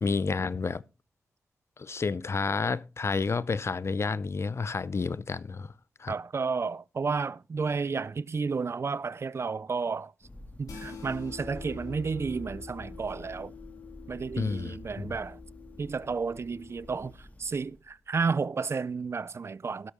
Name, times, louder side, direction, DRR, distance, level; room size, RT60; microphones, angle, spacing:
voice 1, 0.0-0.8 1.8-5.7 6.0-6.1 14.4-15.2, left 4 dB, 50° left, 0.6 m, -30 dB
voice 2, 6.1-10.1 10.6-13.5 14.1-15.4 15.8-19.9, right 5 dB, 50° right, 0.4 m, -32 dB
Thunder, 10.2-18.1, left 1 dB, 25° left, 2.0 m, -50 dB
sound 1, 10.6-17.1, left 4 dB, 90° left, 3.2 m, -45 dB
16.5 x 6.4 x 3.6 m
cardioid pair, 50°, 6 cm